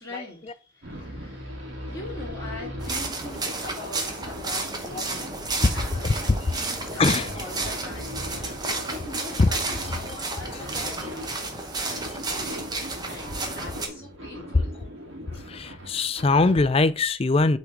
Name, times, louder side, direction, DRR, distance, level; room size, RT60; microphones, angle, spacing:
voice 1, 0.0-6.0 6.2-8.2 8.8-14.7, left 2 dB, 15° left, 2.8 m, -42 dB
sound 1, 0.8-16.9, equal, 75° right, 2.0 m, -40 dB
sound 2, 2.8-13.9, right 3 dB, 20° right, 0.9 m, -32 dB
voice 2, 5.6-6.1 6.4-6.6 7.0-7.4 8.3-8.9 9.4-11.1 15.3-17.6, left 3 dB, 30° left, 0.4 m, -24 dB
6.1 x 3.8 x 4.6 m
head